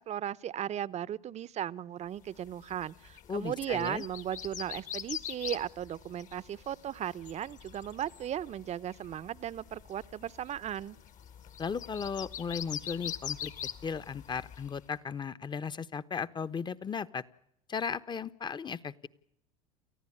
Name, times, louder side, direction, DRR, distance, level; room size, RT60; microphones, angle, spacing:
voice 1, 0.0-11.0, right 10 dB, 35° right, 0.8 m, -36 dB
sound 1, 2.4-14.8, left 9 dB, 45° left, 1.7 m, -44 dB
voice 2, 3.3-4.0 11.6-13.5 13.8-17.2 17.7-19.1, left 6 dB, 25° left, 1.1 m, -36 dB
29.5 x 15.0 x 8.7 m
hypercardioid pair, 80°, 18 cm